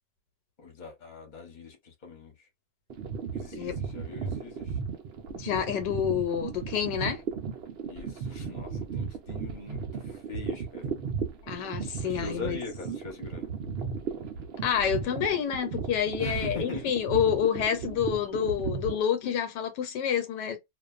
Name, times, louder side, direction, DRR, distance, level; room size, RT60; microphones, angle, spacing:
voice 1, 0.6-2.3 3.3-4.8 7.8-10.9 12.0-13.5 16.2-16.9, left 4 dB, 35° left, 0.9 m, -42 dB
sound 1, 2.9-19.0, right 6 dB, 85° right, 0.5 m, -35 dB
voice 2, 5.4-7.2 11.5-12.6 14.6-20.6, left 8 dB, 80° left, 1.3 m, -28 dB
2.5 x 2.4 x 2.4 m
omnidirectional pair, 1.8 m